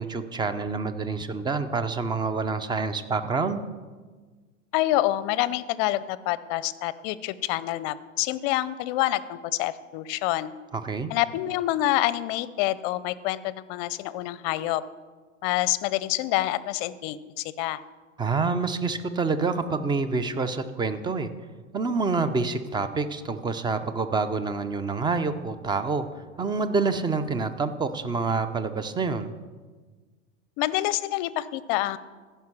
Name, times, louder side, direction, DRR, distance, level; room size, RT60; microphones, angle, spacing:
voice 1, 0.0-3.6 10.7-11.1 18.2-21.3 21.7-26.1 26.4-29.3, right 4 dB, 10° right, 11 dB, 0.6 m, -27 dB
voice 2, 4.7-10.5 11.1-14.8 15.4-17.8 30.6-32.0, left 15 dB, 45° left, 17 dB, 0.6 m, -27 dB
15.0 x 5.6 x 6.1 m, 1.4 s
hypercardioid pair, 105°, 38 cm